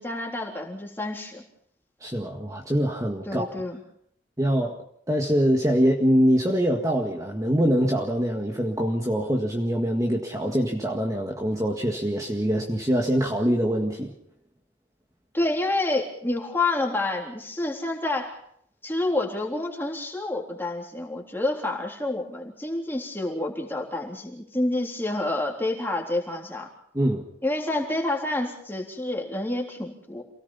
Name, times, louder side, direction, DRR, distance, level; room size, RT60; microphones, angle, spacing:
voice 1, 0.0-1.4 3.3-3.8 15.3-18.4 18.8-26.7 27.4-30.2, left 2 dB, 10° left, 0 dB, 3.6 m, -28 dB
voice 2, 2.0-3.5 4.4-4.8 5.1-14.1 26.9-27.2, equal, 15° right, 0 dB, 1.8 m, -24 dB
28.0 x 18.0 x 5.7 m, 0.68 s
head